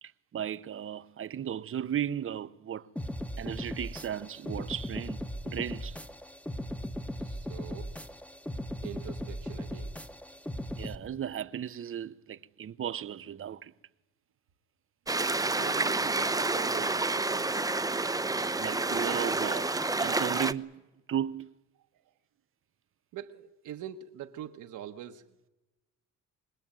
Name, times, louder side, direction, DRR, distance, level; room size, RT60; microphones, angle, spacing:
voice 1, 0.0-2.9 3.4-5.2 5.4-6.0 10.7-13.7 18.5-19.7 20.0-20.8 21.1-21.5, right 9 dB, 45° right, 0.9 m, -35 dB
sound 1, 3.0-11.0, equal, 5° left, 1.2 m, -38 dB
voice 2, 7.2-7.9 8.8-9.9 15.2-17.7 23.1-25.3, right 10 dB, 75° right, 1.4 m, -44 dB
sound 2, 15.1-20.5, right 3 dB, 10° right, 0.8 m, -29 dB
24.0 x 20.0 x 9.1 m
cardioid pair, 90°, 31 cm